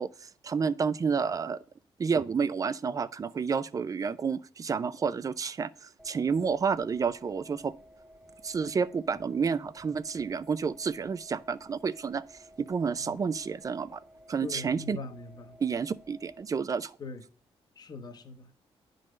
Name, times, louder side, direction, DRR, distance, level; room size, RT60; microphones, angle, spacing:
voice 1, 0.0-1.6 2.0-7.7 8.4-12.2 12.6-14.0 14.3-15.0 15.6-17.0, right 5 dB, 35° right, 0.5 m, -30 dB
sound 1, 6.0-16.4, equal, 5° right, 1.2 m, -55 dB
voice 2, 14.4-15.6 17.0-17.2 17.8-18.5, left 4 dB, 40° left, 1.1 m, -41 dB
10.5 x 3.9 x 6.4 m
cardioid pair, 130°, 10 cm